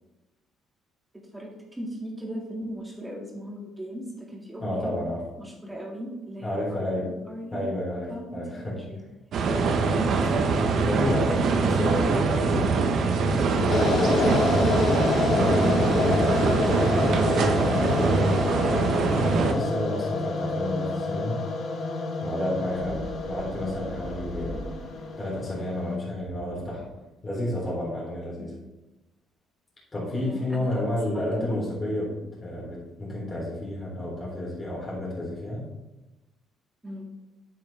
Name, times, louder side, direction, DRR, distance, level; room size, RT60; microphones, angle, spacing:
voice 1, 1.1-5.0 5.4-7.6 8.1-9.0 9.4-10.3 22.6-22.7 28.3-28.5 30.1-31.6 36.8-37.1, equal, 15° right, -2 dB, 2.3 m, -38 dB
voice 2, 4.6-5.2 6.4-7.2 7.5-8.8 10.8-14.7 15.1-19.0 19.3-21.5 22.2-24.6 25.2-26.9 27.2-28.5 29.9-35.7, left 1 dB, 25° left, -5 dB, 3.5 m, -31 dB
sound 1, 9.3-19.5, right 4 dB, 60° right, 1.2 m, -23 dB
sound 2, 13.7-26.0, left 3 dB, 50° left, 1.3 m, -28 dB
sound 3, 22.7-25.2 26.1-27.1, equal, 80° right, 2.9 m, -40 dB
9.0 x 8.7 x 3.5 m, 1.0 s
cardioid pair, 105°, 0 cm